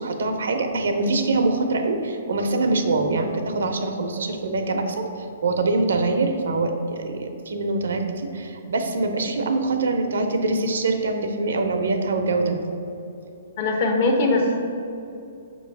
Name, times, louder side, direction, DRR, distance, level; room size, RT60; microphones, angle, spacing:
voice 1, 0.0-5.1 5.4-12.6, right 3 dB, 80° right, 5 dB, 0.7 m, -24 dB
voice 2, 13.6-14.6, left 2 dB, 45° left, 2 dB, 0.9 m, -20 dB
6.4 x 3.0 x 5.3 m, 2.7 s
hypercardioid pair, 150°, 0 cm